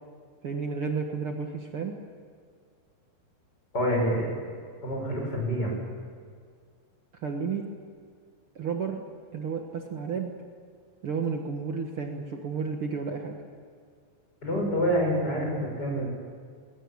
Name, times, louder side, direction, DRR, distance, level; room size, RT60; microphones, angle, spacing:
voice 1, 0.4-2.0 7.2-7.7 8.5-9.0 9.3-10.3 11.0-13.4, right 5 dB, 80° right, 3 dB, 1.2 m, -32 dB
voice 2, 3.7-4.3 4.8-5.7 14.4-16.1, equal, 20° left, -1 dB, 7.3 m, -27 dB
21.0 x 20.5 x 8.8 m, 2.1 s
omnidirectional pair, 5.0 m